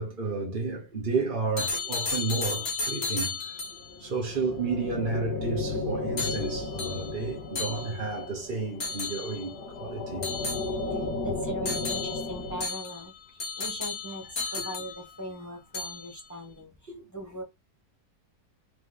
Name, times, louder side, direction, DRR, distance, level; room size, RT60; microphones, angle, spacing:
voice 1, 0.0-3.6 4.0-10.3 14.2-14.7 16.9-17.0, right 4 dB, 40° right, 1.0 m, -32 dB
sound 1, 1.6-3.9 6.2-8.3 8.8-9.6 10.2-11.1 11.6-15.4 15.7-16.3, left 3 dB, 45° left, 1.2 m, -34 dB
sound 2, 3.8-12.6, left 2 dB, 75° left, 1.5 m, -34 dB
voice 2, 10.9-17.4, equal, 15° left, 0.7 m, -40 dB
3.8 x 3.6 x 3.3 m
omnidirectional pair, 1.7 m